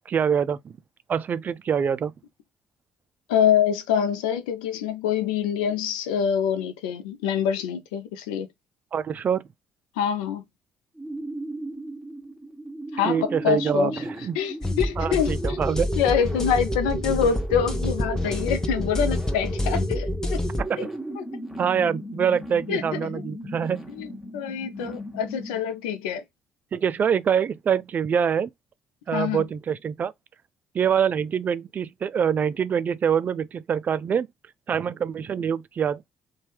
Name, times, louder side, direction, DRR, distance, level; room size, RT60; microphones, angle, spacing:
voice 1, 0.1-0.7 1.1-2.1 8.9-9.5 13.1-14.4 15.0-15.9 20.6-20.9 21.6-23.9 26.7-28.5 29.1-30.1 30.7-34.3 34.7-36.2, right 7 dB, 45° right, 0.3 m, -25 dB
voice 2, 3.3-8.5 10.0-10.4 12.9-14.0 14.4-15.6 16.0-20.4 20.8-20.9 21.2-21.3 22.7-22.8 24.0-26.2 29.1-29.4, left 8 dB, 80° left, 0.5 m, -25 dB
sound 1, 10.9-25.8, right 1 dB, 5° right, 1.2 m, -36 dB
sound 2, 14.6-20.6, left 1 dB, 15° left, 0.8 m, -28 dB
2.7 x 2.3 x 3.1 m
hypercardioid pair, 55°, 4 cm